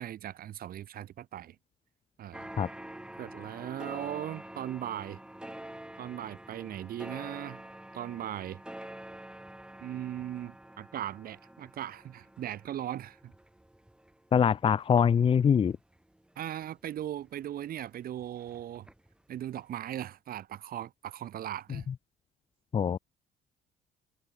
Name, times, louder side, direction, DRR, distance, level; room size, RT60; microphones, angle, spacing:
voice 1, 0.0-1.5 2.2-2.5 3.2-5.2 6.0-7.6 7.9-8.6 9.8-13.2 16.3-18.9 19.3-21.9, right 11 dB, 60° right, 3.2 m, -38 dB
sound 1, 2.3-17.4 17.8-19.2 19.5-19.6, right 1 dB, 5° right, 5.9 m, -47 dB
voice 2, 14.3-15.8 22.7-23.0, left 7 dB, 30° left, 0.7 m, -23 dB
cardioid pair, 110°, 17 cm